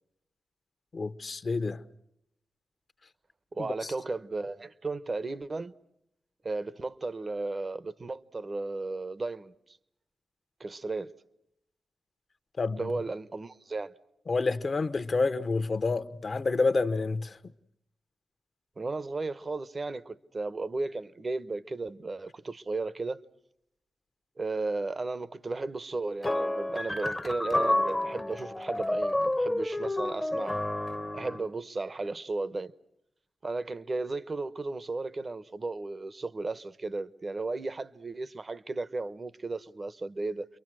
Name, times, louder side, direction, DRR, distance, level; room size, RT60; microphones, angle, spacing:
voice 1, 0.9-1.8 3.6-3.9 12.6-12.9 14.3-17.4, left 3 dB, 50° left, 1.1 m, -29 dB
voice 2, 3.5-5.7 6.4-9.8 10.6-11.1 12.8-13.9 18.8-23.2 24.4-30.6 31.1-32.7 33.4-40.5, right 3 dB, 45° right, 1.0 m, -35 dB
sound 1, 26.2-31.5, left 1 dB, 15° left, 0.9 m, -30 dB
29.5 x 23.0 x 6.2 m
supercardioid pair, 45°, 0 cm